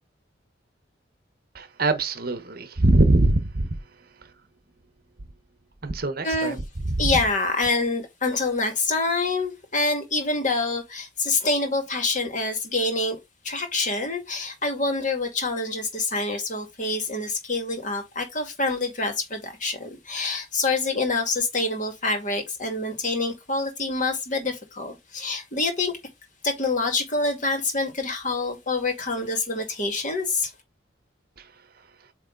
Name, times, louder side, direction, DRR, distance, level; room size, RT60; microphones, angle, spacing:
voice 1, 1.5-3.8 5.8-6.6 7.0-7.1 31.4-31.5, right 2 dB, 50° right, 1.0 m, -22 dB
voice 2, 6.2-6.6 7.0-13.2 13.4-25.9 26.4-30.5, left 3 dB, 40° left, 2.1 m, -26 dB
8.6 x 3.2 x 3.9 m
head